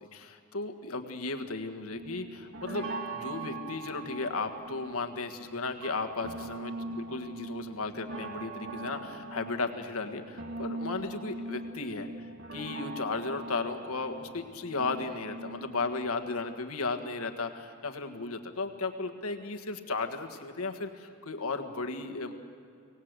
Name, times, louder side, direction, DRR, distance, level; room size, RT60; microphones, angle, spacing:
voice 1, 0.0-12.1 12.5-22.3, left 3 dB, 80° left, 6 dB, 1.6 m, -35 dB
sound 1, 1.9-16.1, right 2 dB, 55° right, 1.7 m, -41 dB
24.5 x 18.5 x 8.2 m, 2.3 s
head